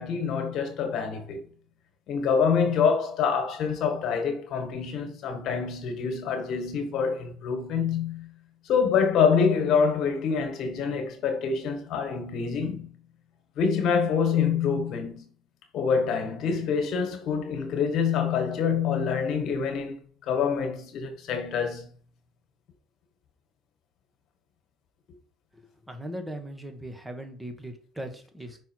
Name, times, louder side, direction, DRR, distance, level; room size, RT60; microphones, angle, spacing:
voice 1, 0.0-1.4 2.1-8.3 8.7-12.9 13.6-15.2 15.7-21.9, left 6 dB, 65° left, 1.8 m, -26 dB
voice 2, 25.5-28.6, right 1 dB, 10° right, 1.6 m, -39 dB
5.7 x 4.6 x 4.7 m
supercardioid pair, 80°, 0 cm